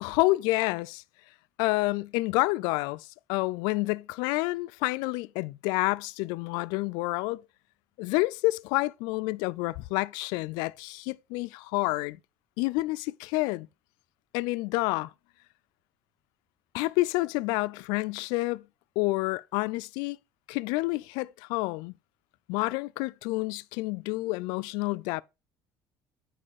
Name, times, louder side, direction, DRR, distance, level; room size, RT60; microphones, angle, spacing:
voice 1, 0.0-1.0 1.6-7.4 8.0-12.2 12.6-13.7 14.3-15.1 16.7-18.6 19.0-20.2 20.5-21.9 22.5-25.2, left 21 dB, 90° left, 0.4 m, -29 dB
10.0 x 4.8 x 3.6 m
cardioid pair, 175°, 7 cm